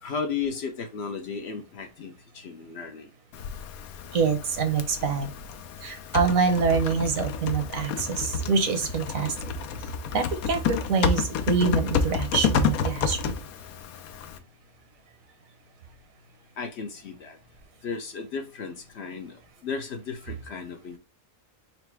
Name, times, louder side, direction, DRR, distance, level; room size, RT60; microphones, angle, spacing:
voice 1, 0.0-3.1 16.6-17.4 17.8-21.0, left 5 dB, 60° left, 6 dB, 0.8 m, -34 dB
Typing, 3.3-14.4, left 5 dB, 90° left, 1.1 m, -30 dB
voice 2, 4.1-5.3 5.8-9.3 10.1-13.3, right 5 dB, 75° right, 6 dB, 1.3 m, -25 dB
4.0 x 2.2 x 4.5 m, 0.30 s
omnidirectional pair, 1.4 m